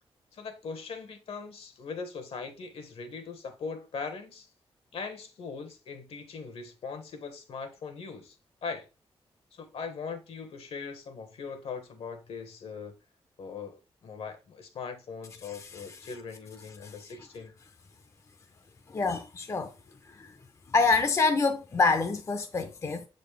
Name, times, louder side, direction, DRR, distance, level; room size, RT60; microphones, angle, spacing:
voice 1, 0.3-4.5 4.9-8.3 8.6-8.8 9.5-12.9 13.4-17.5, left 5 dB, 75° left, 1.3 m, -40 dB
voice 2, 15.4-16.0 16.8-16.9 18.9-19.7 20.1-20.4 20.7-23.1, left 4 dB, 30° left, 0.5 m, -27 dB
7.0 x 4.1 x 3.3 m
wide cardioid pair, 165°, 10 cm